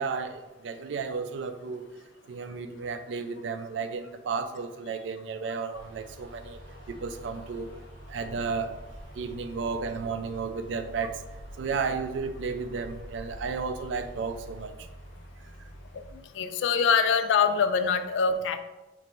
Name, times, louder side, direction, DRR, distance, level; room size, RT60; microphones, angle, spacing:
voice 1, 0.0-1.8 2.3-6.6 6.9-7.7 8.1-8.7 9.1-11.2 11.6-14.7, right 5 dB, 65° right, 9 dB, 0.3 m, -33 dB
sound 1, 5.7-16.1, equal, 25° right, 1.2 m, -46 dB
voice 2, 16.3-18.6, left 6 dB, 65° left, 9 dB, 0.3 m, -24 dB
3.1 x 2.6 x 4.3 m, 1.1 s
head